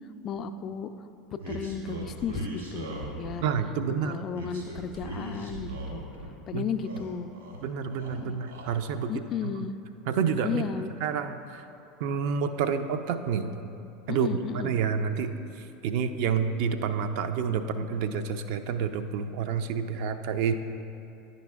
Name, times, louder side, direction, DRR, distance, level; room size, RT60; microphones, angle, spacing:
voice 1, 0.2-0.9 1.5-3.4 4.0-6.0 6.5-7.3 8.2-8.4 9.1-9.8 10.4-10.9 14.1-14.7, left 7 dB, 40° left, 9 dB, 0.3 m, -34 dB
sound 1, 1.4-3.5 4.3-6.3 6.6-7.6 7.9-8.6, right 1 dB, 75° right, 1.4 m, -39 dB
voice 2, 3.4-4.2 6.5-6.7 7.6-9.5 10.1-10.6 11.0-11.6 12.0-13.5 14.1-15.3 15.6-20.6, right 6 dB, 55° right, 8 dB, 0.3 m, -29 dB
10.5 x 5.1 x 2.4 m, 2.8 s
figure-of-eight pair, 75°, 0 cm